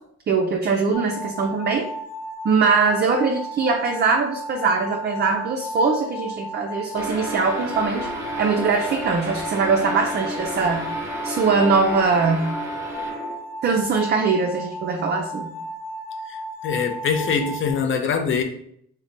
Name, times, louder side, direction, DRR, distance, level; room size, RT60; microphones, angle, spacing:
voice 1, 0.3-1.9 2.4-8.1 8.4-10.9 11.2-12.5 13.6-15.5, right 4 dB, 35° right, 2 dB, 0.4 m, -21 dB
sound 1, 0.9-17.7, equal, 25° left, 1.2 m, -34 dB
sound 2, 7.0-13.6, equal, 10° right, 0.8 m, -32 dB
voice 2, 16.6-18.4, left 6 dB, 40° left, 6 dB, 0.6 m, -23 dB
3.2 x 2.1 x 3.8 m, 0.69 s
cardioid pair, 90°, 30 cm